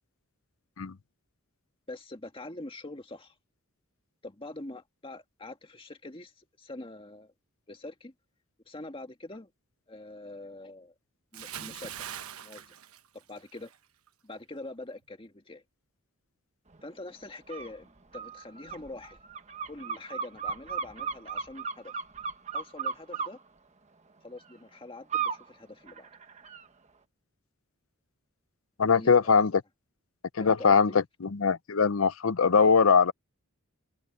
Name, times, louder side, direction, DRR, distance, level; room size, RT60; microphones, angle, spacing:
voice 1, 1.9-3.4 4.2-7.3 7.7-8.1 8.7-9.5 9.9-10.9 11.3-11.9 12.4-12.7 13.1-13.7 14.2-15.6 16.8-19.2 19.7-22.0 22.5-23.4 24.2-26.1 28.9-29.4 30.4-31.0, left 2 dB, 25° left, 1.8 m, -44 dB
Bathtub (filling or washing) / Splash splatter, 11.3-13.8 14.1-14.4, right 10 dB, 85° right, 1.1 m, -42 dB
sound 1, 17.5-17.7 18.1-23.3 25.1-25.4 25.9-26.6, right 6 dB, 30° right, 1.4 m, -35 dB
voice 2, 28.8-29.5 30.3-33.1, left 5 dB, 70° left, 0.7 m, -22 dB
head